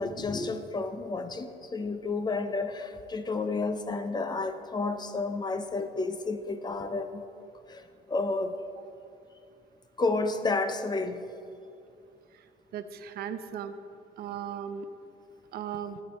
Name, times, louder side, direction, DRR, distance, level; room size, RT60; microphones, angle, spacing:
voice 1, 0.0-7.2 7.7-8.6 10.0-11.2, left 3 dB, 25° left, 9 dB, 0.7 m, -31 dB
voice 2, 12.7-13.8 14.2-14.9 15.5-16.0, right 8 dB, 65° right, 10 dB, 0.7 m, -37 dB
13.5 x 8.7 x 4.3 m, 2.5 s
cardioid pair, 110°, 17 cm